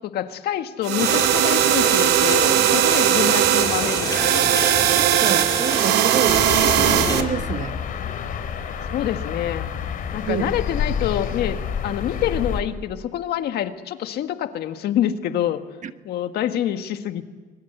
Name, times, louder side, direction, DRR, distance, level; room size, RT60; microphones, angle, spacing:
voice 1, 0.0-4.7 8.9-9.7 10.1-11.6 11.8-15.7 16.0-17.2, left 11 dB, 75° left, 1.7 m, -26 dB
sound 1, 0.8-7.2, right 14 dB, 80° right, 0.9 m, -19 dB
sound 2, 1.0-7.2, left 3 dB, 25° left, 6.1 m, -28 dB
voice 2, 5.0-7.9 10.3-10.6 15.8-15.9, right 8 dB, 45° right, 1.3 m, -28 dB
sound 3, 6.3-12.6, left 7 dB, 55° left, 3.4 m, -28 dB
26.0 x 21.5 x 8.0 m
cardioid pair, 110°, 17 cm